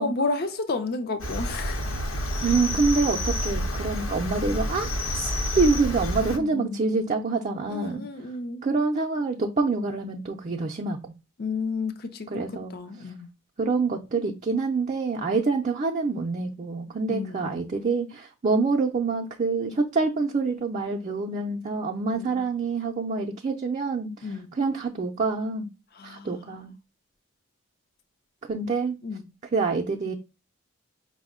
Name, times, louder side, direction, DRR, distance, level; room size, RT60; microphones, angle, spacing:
voice 1, 0.0-2.0 6.3-6.8 7.7-8.6 11.4-13.3 17.1-17.7 22.1-22.4 24.2-24.5 25.9-26.7 29.0-29.3, left 3 dB, 50° left, 0.5 m, -32 dB
Cricket, 1.2-6.4, equal, 80° left, 0.9 m, -29 dB
voice 2, 2.4-5.3 5.6-8.0 8.6-11.0 12.3-12.7 13.6-24.3 24.6-25.7 26.0-26.7 28.5-28.9 29.5-30.1, right 4 dB, 35° right, 0.4 m, -26 dB
5.1 x 2.1 x 3.5 m
head